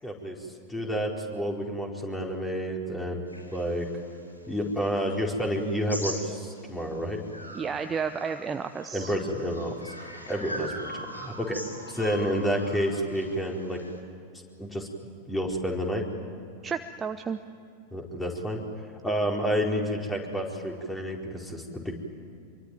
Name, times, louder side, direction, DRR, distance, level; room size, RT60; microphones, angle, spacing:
voice 1, 0.0-3.2 3.5-3.9 4.5-7.2 8.9-11.6 11.9-13.8 14.6-14.9 15.3-16.1 17.9-18.6 19.0-21.9, equal, 10° left, 0 dB, 4.7 m, -30 dB
sound 1, 3.3-6.9 7.3-14.0, equal, 85° left, 4.0 m, -42 dB
voice 2, 7.5-9.1 16.6-17.4, right 6 dB, 20° right, 8 dB, 0.9 m, -32 dB
26.0 x 23.5 x 9.3 m, 2.5 s
figure-of-eight pair, 90°, 0 cm